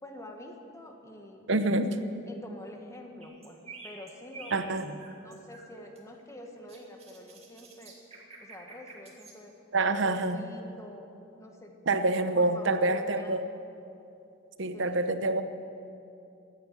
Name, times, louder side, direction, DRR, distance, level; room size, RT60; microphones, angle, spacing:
voice 1, 0.0-1.5 2.3-4.5 5.2-7.9 8.4-9.5 9.8-11.1 11.4-11.7 12.0-13.5 14.7-15.0, left 1 dB, 15° left, 3 dB, 1.5 m, -47 dB
voice 2, 1.5-2.0 4.5-5.0 9.7-10.4 11.9-13.5 14.6-15.4, right 2 dB, 65° right, 10 dB, 0.9 m, -27 dB
sound 1, 3.2-5.7 5.9-9.4, right 3 dB, 30° right, 2.2 m, -49 dB
15.0 x 10.0 x 8.9 m, 2.7 s
head